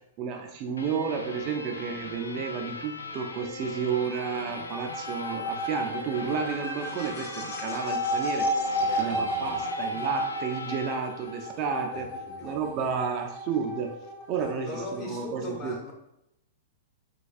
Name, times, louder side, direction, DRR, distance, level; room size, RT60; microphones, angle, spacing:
voice 1, 0.2-8.5 8.9-12.1 12.4-14.0 14.3-15.8, right 6 dB, 40° right, 4 dB, 0.4 m, -31 dB
sound 1, 0.8-12.0, left 3 dB, 90° left, 0.4 m, -40 dB
sound 2, 4.0-15.3, equal, 45° left, 0.6 m, -33 dB
voice 2, 8.8-9.6 11.8-12.6 14.3-15.9, left 2 dB, 30° left, -1 dB, 0.9 m, -40 dB
4.2 x 2.2 x 2.4 m, 0.83 s
hypercardioid pair, 110°, 0 cm